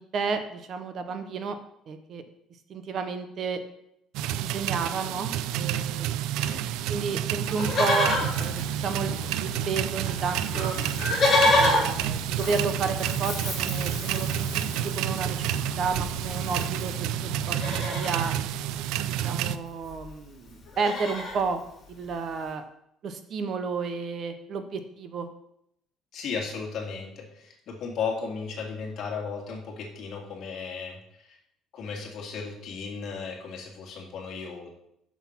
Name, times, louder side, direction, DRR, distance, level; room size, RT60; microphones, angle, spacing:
voice 1, 0.0-1.6 1.9-2.2 2.7-3.6 4.4-5.3 5.5-6.1 6.9-9.1 9.4-10.7 11.4-14.5 14.8-18.3 19.2-21.6 21.9-22.6 23.0-25.3, right 5 dB, 40° right, 9 dB, 0.7 m, -32 dB
sound 1, 4.1-19.6, right 11 dB, 90° right, 0.4 m, -30 dB
Livestock farm animals working animals, 7.4-9.5 9.7-9.8 10.0-17.0 17.4-18.3 19.6-19.7 19.8-20.1 20.5-21.4 22.0-22.1, left 2 dB, 25° left, 3.2 m, -29 dB
sound 2, 8.1-17.8, left 1 dB, 10° right, 3.8 m, -40 dB
voice 2, 26.1-31.4 31.7-34.7, left 5 dB, 45° left, 0 dB, 2.0 m, -35 dB
7.3 x 6.2 x 5.9 m, 0.76 s
cardioid pair, 175°, 0 cm